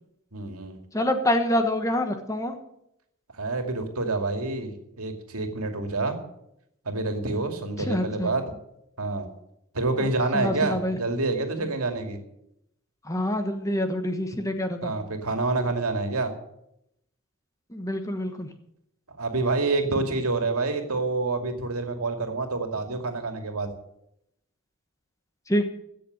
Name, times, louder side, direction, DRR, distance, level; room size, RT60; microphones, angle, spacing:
voice 1, 0.3-0.8 3.3-6.2 6.8-8.4 9.0-9.3 9.7-12.2 14.8-16.3 19.1-23.7, right 3 dB, 90° right, 6 dB, 2.3 m, -27 dB
voice 2, 0.9-2.5 7.9-8.3 10.0-11.0 13.1-14.9 17.7-18.5 25.5-25.7, left 1 dB, 15° left, 6 dB, 1.2 m, -26 dB
16.0 x 6.8 x 8.8 m, 0.79 s
head